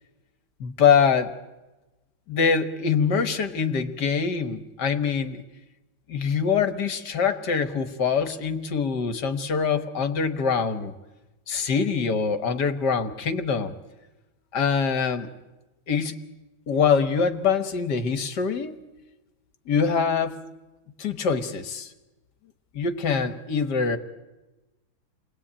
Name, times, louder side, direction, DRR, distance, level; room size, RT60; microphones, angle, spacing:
voice 1, 0.6-1.3 2.3-5.4 6.1-10.9 11.5-13.8 14.5-15.3 15.9-16.2 16.7-18.7 19.7-20.4 21.0-21.9 22.7-24.0, left 6 dB, 60° left, 10 dB, 1.9 m, -24 dB
29.0 x 21.0 x 8.8 m, 1.1 s
omnidirectional pair, 2.1 m